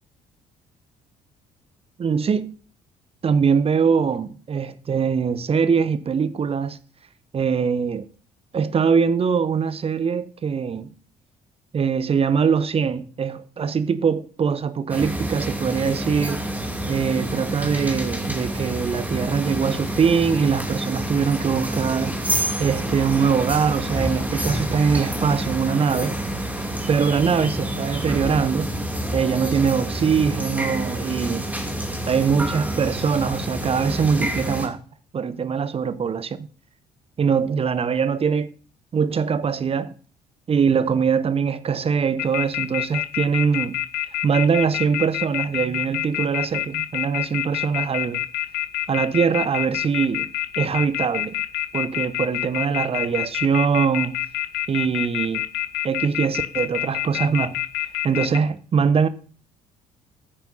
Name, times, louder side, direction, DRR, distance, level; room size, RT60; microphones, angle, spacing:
voice 1, 2.0-2.5 3.2-6.8 7.3-8.1 8.5-10.9 11.7-16.4 16.9-26.2 26.9-28.7 29.1-31.4 32.1-34.8 35.1-36.5 37.2-38.5 38.9-39.9 40.5-43.8 44.2-48.2 48.9-50.3 50.6-51.3 51.7-54.2 54.7-55.5 55.8-57.6 58.0-59.1, right 6 dB, 30° right, 0.8 m, -22 dB
sound 1, 14.9-34.7, right 1 dB, 10° right, 2.8 m, -28 dB
sound 2, 42.2-58.4, left 14 dB, 55° left, 0.9 m, -26 dB
14.5 x 9.0 x 2.8 m
figure-of-eight pair, 50°, 20 cm